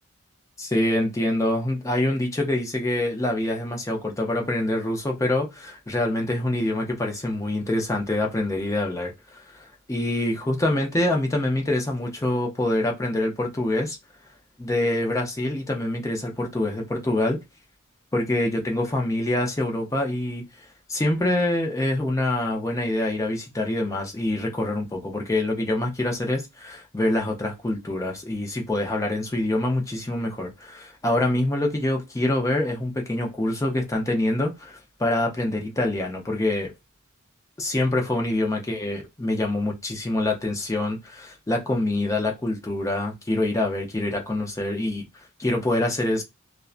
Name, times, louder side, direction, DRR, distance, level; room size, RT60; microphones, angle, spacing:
voice 1, 0.6-14.0 14.6-17.4 18.1-20.4 20.9-36.7 37.6-45.1 45.4-46.2, left 1 dB, 15° left, 0.5 m, -25 dB
2.5 x 2.1 x 2.4 m
head